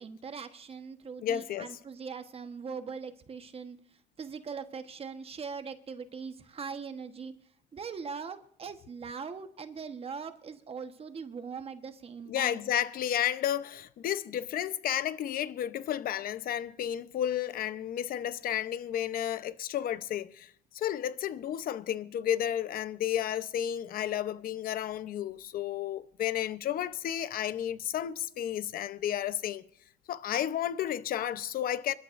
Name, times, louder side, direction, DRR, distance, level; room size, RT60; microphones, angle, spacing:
voice 1, 0.0-7.3 7.7-12.6, right 5 dB, 35° right, 1.2 m, -41 dB
voice 2, 1.2-1.8 12.3-29.6 30.1-32.0, left 10 dB, 60° left, 0.8 m, -32 dB
26.5 x 12.0 x 2.6 m
cardioid pair, 110°, 17 cm